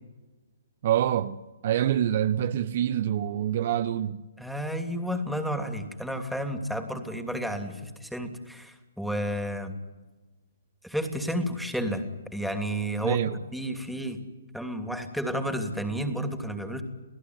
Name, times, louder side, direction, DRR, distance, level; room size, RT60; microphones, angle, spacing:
voice 1, 0.8-1.4 1.6-4.2 13.0-13.4, right 10 dB, 50° right, 0.9 m, -26 dB
voice 2, 4.4-9.7 10.8-12.1 12.3-13.2 13.5-14.2 14.5-16.8, equal, ahead, 2.9 m, -31 dB
29.5 x 17.0 x 9.8 m
hypercardioid pair, 135°, 0 cm